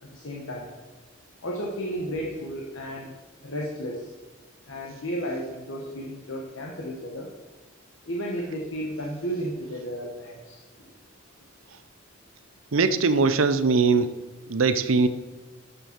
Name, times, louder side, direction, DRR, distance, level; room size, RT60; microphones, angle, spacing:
voice 1, 0.0-0.7 1.4-4.1 4.7-7.3 8.0-10.6, equal, 80° left, -2 dB, 1.3 m, -33 dB
voice 2, 12.7-14.1 14.5-15.1, right 4 dB, 85° right, 12 dB, 0.7 m, -21 dB
11.5 x 6.9 x 4.6 m, 1.3 s
head